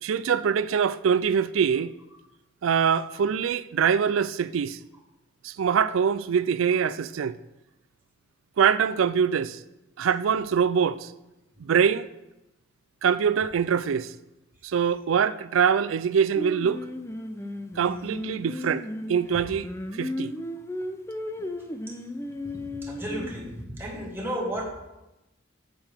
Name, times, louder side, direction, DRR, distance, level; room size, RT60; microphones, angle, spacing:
voice 1, 0.0-1.9 2.6-4.8 5.4-7.4 8.6-9.6 10.0-11.1 11.6-12.1 13.0-14.1 14.6-16.8 17.8-19.7 20.0-20.3, right 7 dB, 80° right, 0.4 m, -24 dB
Singing, 16.4-23.6, left 1 dB, 15° left, 0.5 m, -35 dB
voice 2, 22.8-24.6, right 1 dB, 10° right, 1.5 m, -33 dB
9.0 x 7.8 x 3.5 m
head